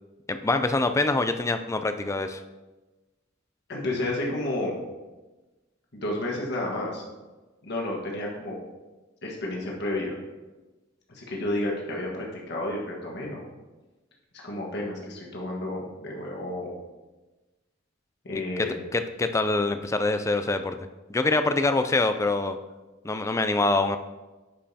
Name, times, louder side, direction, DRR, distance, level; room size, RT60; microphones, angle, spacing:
voice 1, 0.3-2.4 18.3-20.8 21.1-22.6 23.0-24.0, left 2 dB, 15° left, 9 dB, 0.4 m, -25 dB
voice 2, 3.7-4.8 5.9-7.0 7.6-8.6 9.2-10.1 11.1-13.4 14.4-16.7 18.2-18.8, left 1 dB, 60° left, -2 dB, 1.5 m, -31 dB
9.9 x 5.3 x 2.8 m, 1.2 s
head